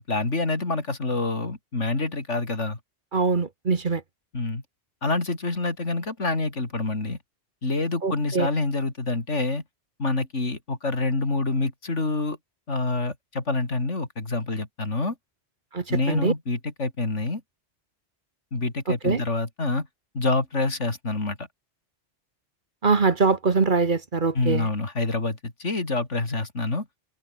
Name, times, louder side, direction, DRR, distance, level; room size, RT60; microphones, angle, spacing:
voice 1, 0.0-2.8 4.3-4.6 5.0-7.2 7.6-9.6 10.0-12.4 12.7-15.2 15.9-17.4 18.5-19.9 20.1-21.5 24.3-26.9, left 3 dB, 80° left, 4.0 m, -27 dB
voice 2, 3.1-4.0 8.0-8.5 15.7-16.3 18.9-19.2 22.8-24.7, right 4 dB, 45° right, 1.4 m, -23 dB
open air
omnidirectional pair, 1.2 m